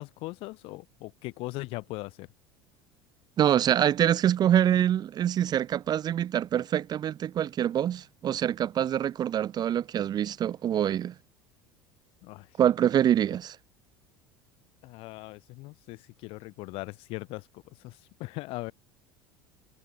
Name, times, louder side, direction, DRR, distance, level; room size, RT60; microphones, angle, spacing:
voice 1, 0.0-2.3 12.2-12.5 14.8-18.7, left 22 dB, 55° left, 1.8 m, -39 dB
voice 2, 3.4-11.1 12.6-13.6, right 10 dB, 35° right, 1.1 m, -25 dB
figure-of-eight pair, 70°, 12 cm